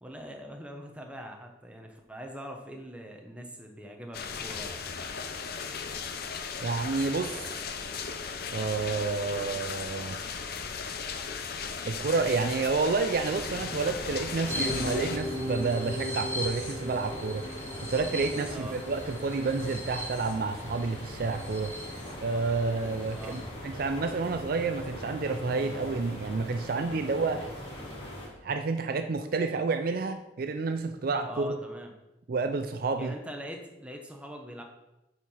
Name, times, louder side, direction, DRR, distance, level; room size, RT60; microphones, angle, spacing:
voice 1, 0.0-4.9 18.5-18.8 23.1-23.4 31.2-31.9 33.0-34.6, equal, 5° right, 2 dB, 1.0 m, -42 dB
sound 1, 4.1-15.2, left 5 dB, 55° left, 0.7 m, -37 dB
voice 2, 6.6-7.7 8.5-10.2 11.8-21.7 22.2-27.5 28.4-31.6 32.3-33.1, right 4 dB, 50° right, 8 dB, 0.4 m, -30 dB
sound 2, 13.2-28.3, equal, 30° left, 2.3 m, -41 dB
sound 3, 14.5-22.1 22.5-22.6 22.9-23.4, left 1 dB, 15° left, 3.2 m, -37 dB
8.1 x 4.7 x 5.6 m, 0.97 s
head